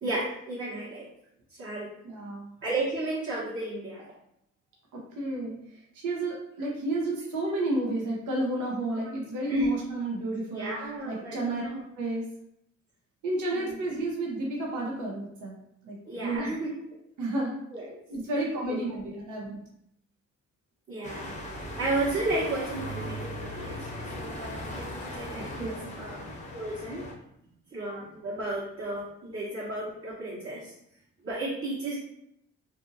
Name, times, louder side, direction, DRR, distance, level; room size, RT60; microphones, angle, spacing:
voice 1, 0.0-1.1 1.6-1.9 2.6-4.0 9.5-9.7 10.5-11.8 13.5-13.7 16.0-16.7 17.7-18.0 18.3-18.8 20.9-21.3 21.8-23.8 24.1-27.0 27.7-30.7 31.2-32.0, right 2 dB, 45° right, -8 dB, 1.0 m, -33 dB
voice 2, 2.0-2.5 4.9-10.7 11.0-11.7 12.0-12.2 13.2-15.6 15.8-16.0 16.2-16.5 17.2-17.6 18.1-19.6 25.3-25.9, right 2 dB, 80° right, -2 dB, 0.8 m, -31 dB
sound 1, 21.0-27.1, left 1 dB, 25° left, 0.6 m, -38 dB
2.6 x 2.6 x 2.6 m, 0.75 s
cardioid pair, 90°, 30 cm